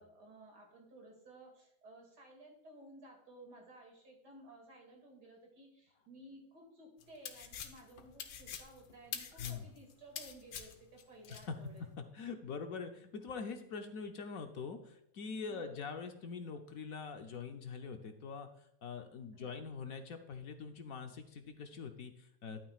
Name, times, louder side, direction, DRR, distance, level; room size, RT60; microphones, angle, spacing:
voice 1, 0.0-11.8 15.5-15.8 19.3-19.6, right 1 dB, 60° right, 1 dB, 2.9 m, -56 dB
sound 1, 7.0-11.5, left 8 dB, 85° left, 1.6 m, -45 dB
voice 2, 12.0-18.5 18.8-22.6, left 5 dB, 60° left, 6 dB, 1.0 m, -44 dB
11.0 x 9.0 x 2.4 m, 0.75 s
omnidirectional pair, 2.0 m